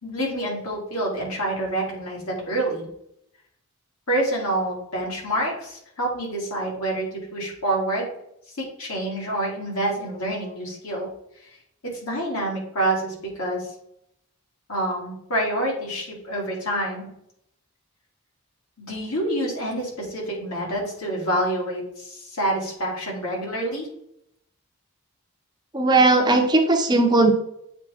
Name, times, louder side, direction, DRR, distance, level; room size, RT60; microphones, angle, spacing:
voice 1, 0.0-2.9 4.1-8.1 8.6-11.1 12.0-13.7 14.7-17.1 18.8-23.9, right 1 dB, 75° left, -2 dB, 2.6 m, -27 dB
voice 2, 25.7-27.3, right 2 dB, 20° right, 5 dB, 0.5 m, -17 dB
8.0 x 4.1 x 3.4 m, 0.75 s
head